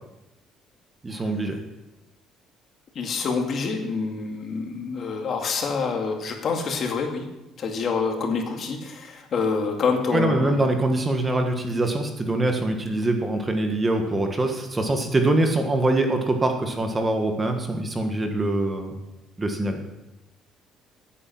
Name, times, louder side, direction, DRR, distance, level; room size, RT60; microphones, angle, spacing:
voice 1, 1.0-1.6 10.1-18.9 19.4-19.8, right 2 dB, 20° right, 4 dB, 1.6 m, -24 dB
voice 2, 2.9-7.3 7.6-10.6, left 5 dB, 45° left, 3 dB, 2.3 m, -27 dB
15.0 x 8.8 x 6.0 m, 0.97 s
cardioid pair, 125°, 0 cm